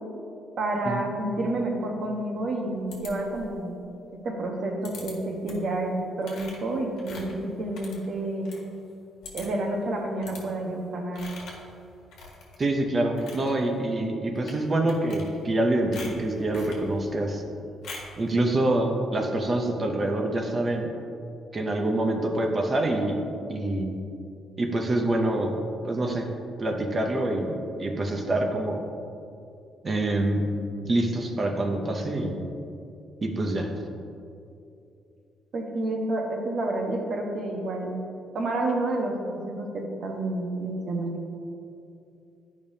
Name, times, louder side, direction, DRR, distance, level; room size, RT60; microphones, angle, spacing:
voice 1, 0.6-3.7 4.2-8.5 9.3-11.2 35.5-38.0 38.3-41.2, right 2 dB, 50° right, 1 dB, 1.0 m, -29 dB
sound 1, 2.9-3.6 4.8-5.1 5.5-5.7 6.2-8.6 8.9-9.0 9.2-9.7 10.2-10.4 11.1-11.7 12.1-12.7 13.0-13.5 14.4-14.6 14.9-15.6 15.9-16.8 17.8-18.2, left 3 dB, 85° left, 1.4 m, -43 dB
voice 2, 12.6-17.4 18.2-20.9 21.5-23.2 23.5-24.0 24.6-25.5 25.8-26.3 26.6-28.8 29.8-30.5 30.9-32.4 33.2-33.7, right 1 dB, 30° right, 3 dB, 0.7 m, -26 dB
10.5 x 5.1 x 2.7 m, 2.6 s
cardioid pair, 130°, 0 cm